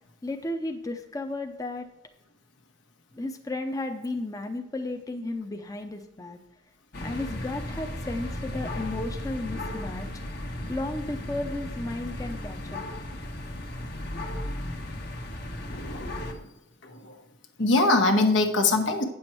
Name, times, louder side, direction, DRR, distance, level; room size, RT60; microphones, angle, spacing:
voice 1, 0.2-1.9 3.1-6.4 7.0-10.1 10.4-12.8, left 2 dB, 20° left, 5 dB, 0.6 m, -34 dB
sound 1, 6.9-16.3, left 1 dB, 60° left, 1.2 m, -35 dB
voice 2, 15.7-16.5 16.8-17.2 17.6-19.0, left 2 dB, 80° left, 4 dB, 1.2 m, -23 dB
8.8 x 7.1 x 4.5 m, 0.90 s
head